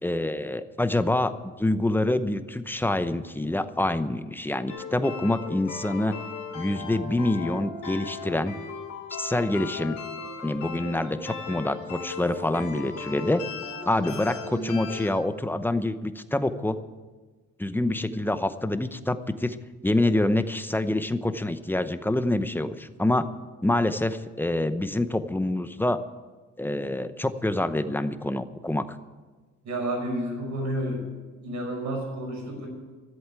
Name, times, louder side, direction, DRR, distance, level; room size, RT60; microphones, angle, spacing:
voice 1, 0.0-6.1 6.5-8.5 9.1-10.0 10.4-13.4 13.9-16.8 17.6-19.6 19.8-23.3 23.6-26.0 26.6-28.8, left 1 dB, 5° left, 11 dB, 0.8 m, -26 dB
sound 1, 4.7-15.1, left 5 dB, 80° left, 2.8 m, -37 dB
voice 2, 13.9-14.3 29.6-31.0 31.4-32.7, right 1 dB, 70° right, 1 dB, 5.5 m, -31 dB
14.0 x 7.9 x 8.9 m, 1.3 s
cardioid pair, 90°, 30 cm